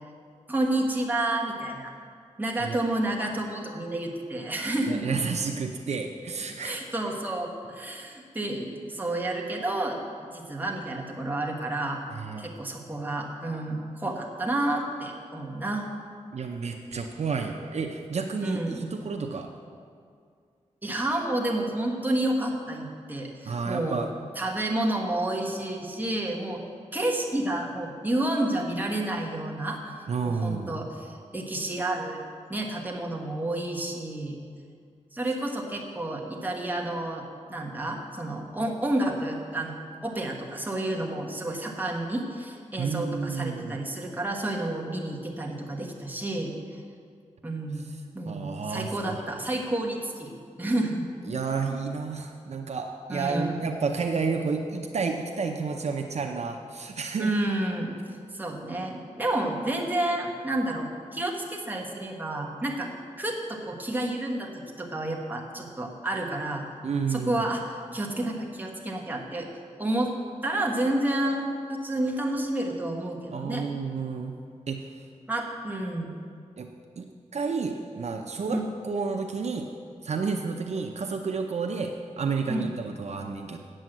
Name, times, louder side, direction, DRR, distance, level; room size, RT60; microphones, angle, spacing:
voice 1, 0.5-1.9 2.4-5.1 6.6-12.0 12.4-15.9 18.4-18.8 20.8-24.0 24.3-26.6 26.9-29.9 30.2-32.2 32.5-34.4 35.1-39.8 40.0-46.8 47.4-47.9 48.1-50.3 50.6-51.0 53.1-53.7 57.2-57.9 58.3-62.9 63.2-66.6 67.1-69.5 69.8-70.1 70.4-73.7 75.3-76.2 78.5-78.7 82.5-82.7, right 1 dB, 15° right, -2 dB, 1.4 m, -30 dB
voice 2, 4.9-6.8 12.1-12.5 16.3-19.5 23.4-24.1 30.1-30.7 42.8-43.8 48.2-48.9 51.3-57.3 66.8-67.4 73.3-74.3 74.7-74.9 76.6-76.7 77.0-77.1 77.3-79.7 80.0-83.6, right 5 dB, 60° right, 3 dB, 0.6 m, -31 dB
8.3 x 7.7 x 7.8 m, 2.2 s
wide cardioid pair, 115°, 12 cm